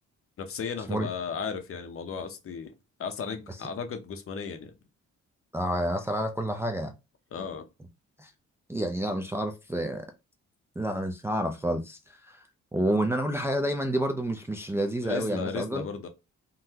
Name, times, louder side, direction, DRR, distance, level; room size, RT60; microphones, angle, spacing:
voice 1, 0.4-2.7 3.0-4.7 7.3-7.7 15.0-16.1, left 6 dB, 45° left, 0.7 m, -35 dB
voice 2, 5.5-6.9 8.2-8.3 8.7-10.1 10.8-12.4 12.7-15.9, right 1 dB, 10° right, 0.4 m, -29 dB
3.7 x 2.1 x 2.8 m
cardioid pair, 90°, 30 cm